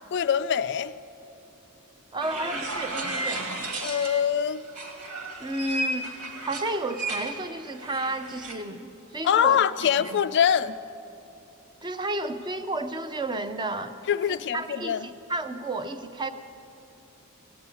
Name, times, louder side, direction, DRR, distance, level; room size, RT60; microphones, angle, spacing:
voice 1, 0.1-0.9 3.8-4.6 9.2-10.7 14.1-15.1, left 8 dB, 55° left, 13 dB, 0.4 m, -24 dB
voice 2, 2.1-3.4 5.4-6.1 6.4-10.2 11.8-13.9 14.3-16.3, right 2 dB, 20° right, 9 dB, 0.6 m, -32 dB
sound 1, 2.2-4.3 4.7-8.5, right 1 dB, 85° right, 2.1 m, -34 dB
17.0 x 8.6 x 8.3 m, 2.8 s
head